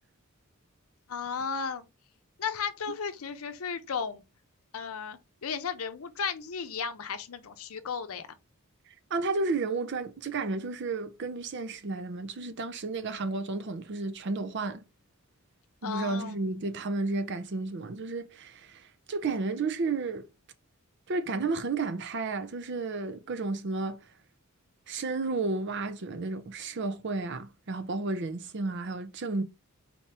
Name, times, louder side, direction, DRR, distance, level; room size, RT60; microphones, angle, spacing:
voice 1, 1.1-1.9 2.4-4.2 4.7-8.3 15.8-16.4, left 6 dB, 80° left, 0.6 m, -34 dB
voice 2, 9.1-14.8 15.8-20.3 21.1-24.0 24.9-29.4, right 3 dB, 55° right, 0.5 m, -32 dB
4.2 x 2.9 x 3.3 m
head